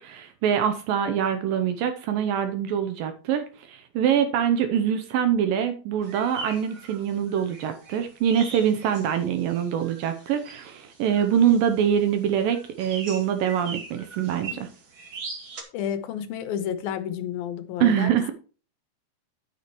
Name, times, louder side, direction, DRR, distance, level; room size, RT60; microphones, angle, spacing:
voice 1, 0.0-14.7 17.8-18.3, right 8 dB, 75° right, 2.4 m, -24 dB
sound 1, 6.0-15.6, right 4 dB, 40° right, 2.3 m, -41 dB
voice 2, 15.7-18.1, left 9 dB, 80° left, 2.6 m, -31 dB
9.8 x 9.5 x 3.0 m
omnidirectional pair, 4.3 m